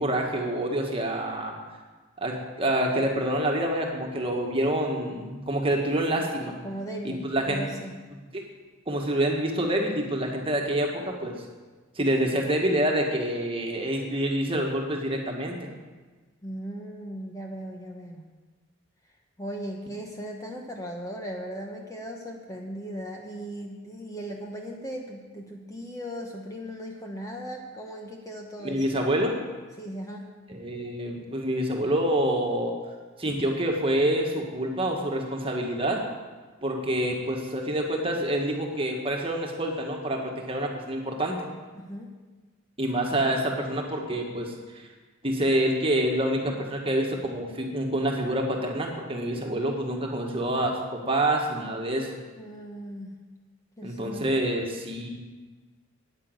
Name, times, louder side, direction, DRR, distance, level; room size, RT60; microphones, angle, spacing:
voice 1, 0.0-1.5 2.2-6.6 7.0-7.6 8.3-8.5 8.9-11.4 12.0-15.7 28.6-29.4 30.5-32.8 33.2-36.0 36.6-41.4 42.8-44.9 45.2-52.1 53.8-55.1, right 1 dB, 25° right, 1 dB, 1.8 m, -27 dB
voice 2, 6.6-8.0 16.4-18.2 19.4-28.8 29.8-30.3 41.7-42.1 52.4-53.1 53.8-54.3, equal, 15° left, 1 dB, 1.1 m, -37 dB
9.7 x 9.6 x 8.0 m, 1.3 s
head